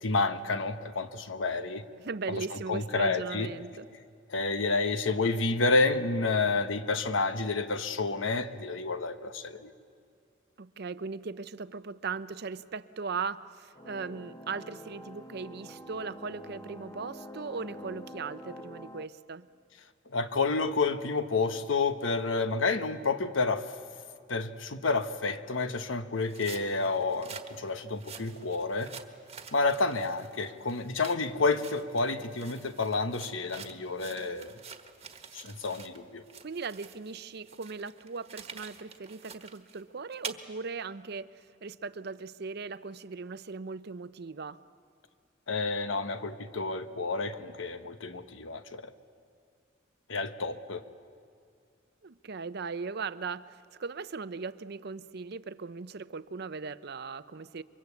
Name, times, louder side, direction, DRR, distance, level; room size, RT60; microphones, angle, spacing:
voice 1, 0.0-1.8 2.4-3.5 4.3-9.7 20.1-23.7 24.3-28.9 29.5-34.5 35.3-36.2 45.5-48.9 50.1-50.8, left 3 dB, 85° left, 9 dB, 1.2 m, -30 dB
voice 2, 2.0-3.9 10.6-19.5 36.4-44.6 52.0-57.6, right 4 dB, 55° right, 14 dB, 0.6 m, -38 dB
sound 1, 13.8-19.1, equal, 15° left, 0.9 m, -46 dB
sound 2, 26.2-36.0 36.3-40.4, right 6 dB, 30° right, 1.4 m, -47 dB
28.0 x 24.0 x 8.3 m, 2.2 s
head